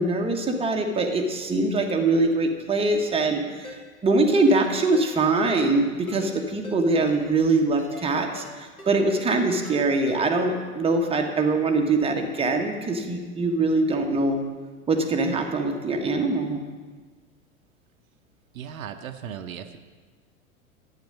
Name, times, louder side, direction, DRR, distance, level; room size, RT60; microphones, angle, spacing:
voice 1, 0.0-3.7 4.0-14.4 14.9-16.6, right 2 dB, 15° right, 3 dB, 1.1 m, -23 dB
Ringtone, 3.6-3.8 4.4-4.6 4.9-5.1 5.4-5.5 6.1-6.3 6.6-6.8 7.1-7.2 7.8-8.1 8.4-8.5 8.8-8.9 9.5-9.8 10.1-10.2, left 1 dB, 85° left, 2.3 m, -42 dB
voice 2, 18.5-19.8, right 8 dB, 70° right, 8 dB, 0.8 m, -37 dB
10.5 x 8.4 x 5.4 m, 1.4 s
figure-of-eight pair, 95°, 42 cm